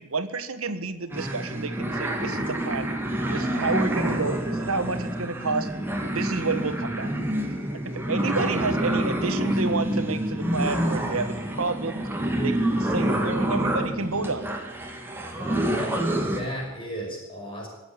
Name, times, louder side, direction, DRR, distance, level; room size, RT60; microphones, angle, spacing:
voice 1, 0.0-2.9 3.3-5.7 6.1-7.1 7.7-12.1 12.4-14.5, right 3 dB, 85° right, 10 dB, 1.6 m, -30 dB
sound 1, 1.1-16.4, right 1 dB, 10° right, 2.3 m, -27 dB
voice 2, 15.4-16.0 16.3-17.7, equal, 25° left, -1 dB, 5.4 m, -35 dB
22.5 x 8.0 x 8.0 m, 1.0 s
head